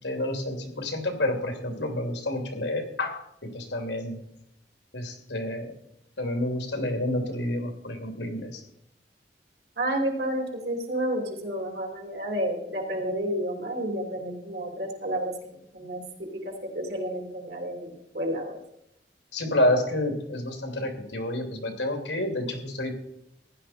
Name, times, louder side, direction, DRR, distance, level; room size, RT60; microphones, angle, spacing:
voice 1, 0.0-4.2 4.9-5.7 6.2-8.6 19.3-22.9, left 1 dB, 90° left, 4 dB, 2.8 m, -29 dB
voice 2, 9.8-15.4 15.7-18.6, right 1 dB, 65° right, 2 dB, 3.0 m, -31 dB
15.5 x 11.0 x 4.3 m, 0.78 s
head